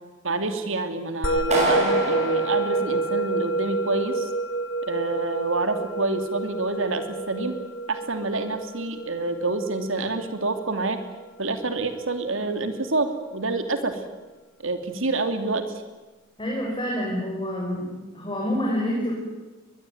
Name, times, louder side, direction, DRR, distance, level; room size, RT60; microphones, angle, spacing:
voice 1, 0.2-4.3 4.8-7.6 7.9-11.0 11.4-14.0 14.6-15.7, right 3 dB, 70° right, 8 dB, 2.9 m, -27 dB
Musical instrument, 1.2-11.8, right 2 dB, 65° left, 2.8 m, -29 dB
Clapping, 1.5-3.6, right 1 dB, 35° right, 7.6 m, -27 dB
voice 2, 16.4-17.9 18.1-19.1, equal, 25° left, -3 dB, 6.2 m, -27 dB
22.5 x 21.5 x 9.5 m, 1.2 s
head